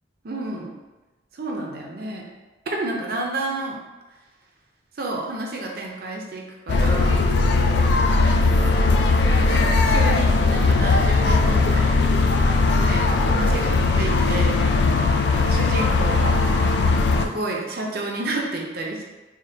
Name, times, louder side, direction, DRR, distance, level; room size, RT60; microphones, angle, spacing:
voice 1, 0.2-0.8 1.4-2.3 2.7-3.8 5.0-7.2 8.1-8.7 9.3-12.2 12.8-14.5 15.1-16.4 17.2-19.0, right 2 dB, 55° right, 0 dB, 0.5 m, -30 dB
sound 1, 6.7-17.3, left 3 dB, 65° left, 0.3 m, -19 dB
5.0 x 2.2 x 2.8 m, 1.1 s
head